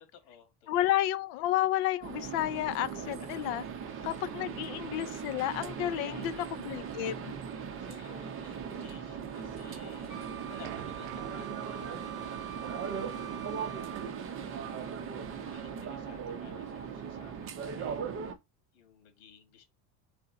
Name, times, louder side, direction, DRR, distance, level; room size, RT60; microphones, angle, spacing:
voice 1, 0.1-0.7 3.9-4.3 5.9-6.9 7.8-10.2 10.5-13.0 13.5-14.2 14.6-15.1 15.4-18.0 18.7-19.6, left 8 dB, 85° left, 1.9 m, -56 dB
voice 2, 0.7-3.6 4.0-7.3, left 13 dB, 55° left, 0.5 m, -31 dB
sound 1, 2.0-18.3, right 7 dB, 30° right, 0.6 m, -39 dB
Wind instrument woodwind instrument, 10.1-14.2, right 12 dB, ahead, 1.0 m, -45 dB
sound 2, 10.4-16.8, right 14 dB, 80° right, 0.7 m, -52 dB
3.8 x 3.4 x 3.9 m
cardioid pair, 160°, 46 cm